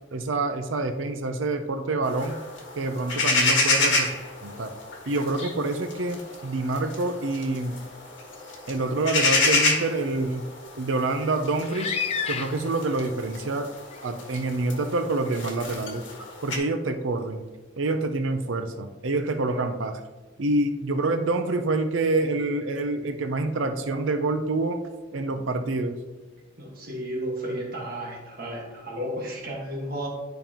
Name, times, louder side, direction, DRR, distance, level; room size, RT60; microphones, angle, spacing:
voice 1, 0.1-2.4 2.8-4.1 4.4-4.7 5.1-7.8 8.7-10.5 10.8-11.9 12.3-13.7 14.0-16.0 16.4-17.4 17.8-20.0 20.4-24.8 25.1-26.0, right 2 dB, 85° right, 7 dB, 0.6 m, -27 dB
sound 1, 2.0-16.6, left 3 dB, 70° left, 1.6 m, -29 dB
sound 2, 11.6-12.9 13.9-14.0 14.7-14.8, left 7 dB, 30° left, 0.4 m, -30 dB
voice 2, 26.6-30.1, equal, 50° right, -2 dB, 1.5 m, -33 dB
11.0 x 5.3 x 2.9 m, 1.2 s
head